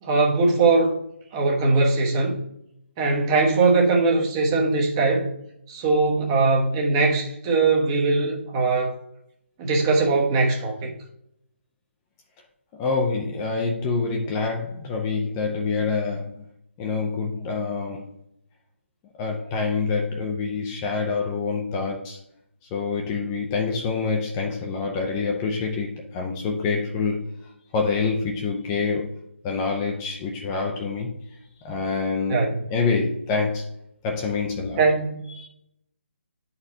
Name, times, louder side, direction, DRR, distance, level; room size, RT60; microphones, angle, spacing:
voice 1, 0.0-0.9 1.3-2.4 3.0-5.3 5.7-9.0 9.6-10.9 32.3-32.6 34.8-35.3, right 3 dB, 25° right, -1 dB, 1.0 m, -21 dB
voice 2, 12.8-16.4 16.8-18.1 19.1-22.2 22.7-27.3 27.7-29.1 29.4-31.1 31.6-32.4 32.7-33.7 34.0-34.8 35.4-35.5, left 4 dB, 20° left, 1 dB, 0.6 m, -26 dB
9.5 x 4.2 x 2.7 m, 0.75 s
figure-of-eight pair, 145°, 7 cm